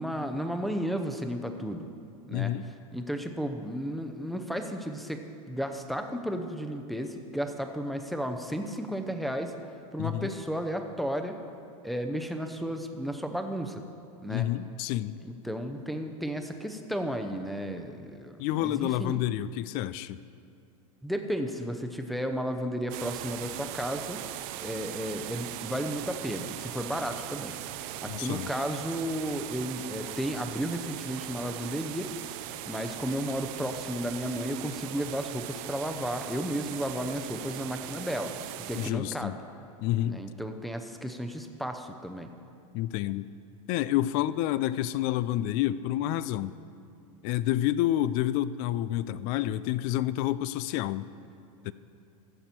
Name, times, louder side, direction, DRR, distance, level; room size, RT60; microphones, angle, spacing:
voice 1, 0.0-1.9 2.3-2.5 2.9-9.5 9.9-11.4 11.8-13.8 14.2-14.5 15.2-19.2 21.0-24.2 24.6-27.6 28.0-32.1 32.7-39.4 40.0-42.3, equal, ahead, 6 dB, 0.7 m, -33 dB
voice 2, 2.3-2.7 10.0-10.3 14.3-15.2 18.4-20.2 28.1-28.5 38.8-39.3 39.8-40.1 42.7-43.3 43.7-46.5 47.2-51.1 51.6-51.7, left 13 dB, 50° left, 17 dB, 0.4 m, -29 dB
sound 1, 22.9-38.9, right 14 dB, 50° right, 0.5 m, -39 dB
15.0 x 6.8 x 4.4 m, 2.5 s
hypercardioid pair, 115°, 18 cm